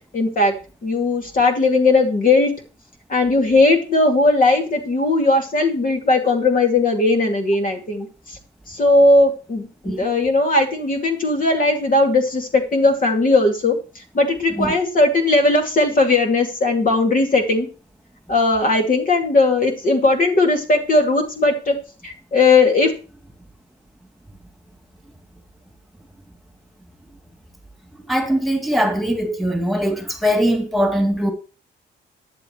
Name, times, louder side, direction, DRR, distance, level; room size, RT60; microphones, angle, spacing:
voice 1, 0.1-0.5 0.8-2.5 3.1-8.1 8.7-13.8 14.1-17.7 18.3-21.7 22.0-22.9, left 2 dB, 45° left, 2.5 m, -17 dB
voice 2, 28.1-31.3, equal, ahead, 2.6 m, -21 dB
13.5 x 10.5 x 3.1 m
cardioid pair, 90°, 20 cm